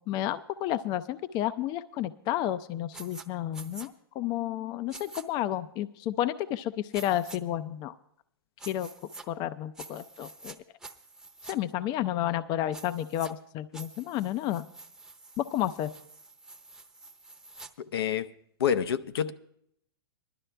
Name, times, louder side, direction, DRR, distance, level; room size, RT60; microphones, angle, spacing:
voice 1, 0.1-7.9 8.7-8.9 9.3-10.6 11.5-14.6 15.4-15.9, left 12 dB, 35° left, 0.5 m, -31 dB
sound 1, 2.9-3.2 3.5-3.9 4.9-5.2 6.9-7.4 8.6-9.2 9.7-10.6 10.8-11.5 12.7-13.3 13.7-17.7, right 3 dB, 5° right, 0.8 m, -47 dB
voice 2, 17.8-18.3 18.6-19.3, left 8 dB, 75° left, 0.7 m, -27 dB
19.0 x 12.0 x 3.4 m
hypercardioid pair, 125°, 13 cm